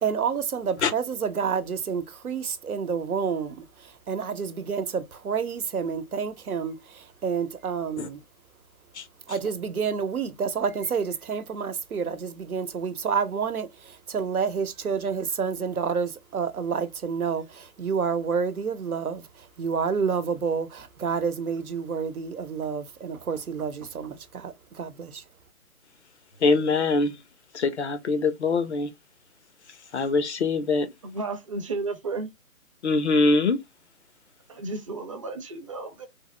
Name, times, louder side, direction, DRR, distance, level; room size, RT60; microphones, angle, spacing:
voice 1, 0.0-3.6 4.1-8.2 9.3-19.3 19.6-25.2, right 6 dB, 80° right, 0.8 m, -29 dB
voice 2, 26.4-27.2 27.5-28.9 29.9-30.9 32.8-33.6, left 3 dB, 50° left, 0.8 m, -23 dB
voice 3, 31.0-32.3 34.5-36.1, right 3 dB, 25° right, 0.6 m, -33 dB
3.4 x 2.0 x 3.1 m
figure-of-eight pair, 145°, 43 cm